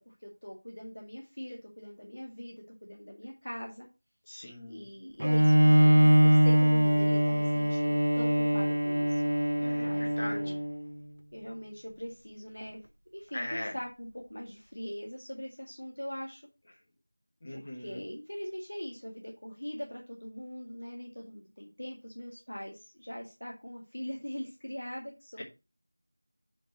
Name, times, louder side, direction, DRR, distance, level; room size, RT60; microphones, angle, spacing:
voice 1, 0.1-3.9 4.7-9.2 9.8-10.6 11.3-12.8 13.1-16.4 17.5-25.4, equal, 55° left, -1 dB, 2.0 m, -42 dB
voice 2, 4.3-4.8 9.6-9.9 10.2-10.4 13.3-13.8 17.4-18.0 25.4-25.5, left 1 dB, 15° left, -1 dB, 1.0 m, -39 dB
Bowed string instrument, 5.2-10.9, equal, 85° right, 0.4 m, -23 dB
5.9 x 5.5 x 4.4 m, 0.28 s
figure-of-eight pair, 180°, 0 cm